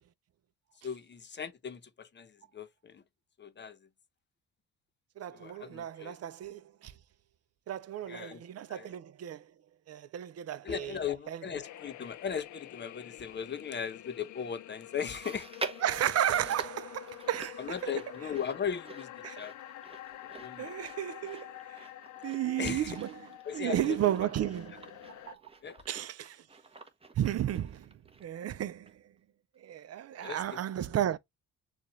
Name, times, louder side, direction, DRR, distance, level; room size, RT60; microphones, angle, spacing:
voice 1, 0.8-3.0 3.4-3.8 5.3-6.2 8.1-8.4 8.7-8.9 10.6-15.5 17.6-19.5 20.2-20.7 22.6-23.0 23.4-24.0 25.6-25.8 30.1-30.6, left 7 dB, 35° left, 0.9 m, -38 dB
voice 2, 5.2-6.9 7.7-9.5 9.9-11.0 11.3-11.4 15.8-18.0 19.2-19.4 20.6-21.9 22.2-23.3 23.5-25.4 25.9-26.5 27.2-27.9 28.2-29.0 29.6-31.2, right 11 dB, 55° right, 0.6 m, -33 dB
sound 1, 11.6-25.4, left 13 dB, 70° left, 0.6 m, -48 dB
Chewing mastication, 15.0-28.5 28.9-29.0 29.8-29.9, right 3 dB, 20° right, 1.0 m, -47 dB
6.8 x 2.5 x 3.1 m
cardioid pair, 90°, 30 cm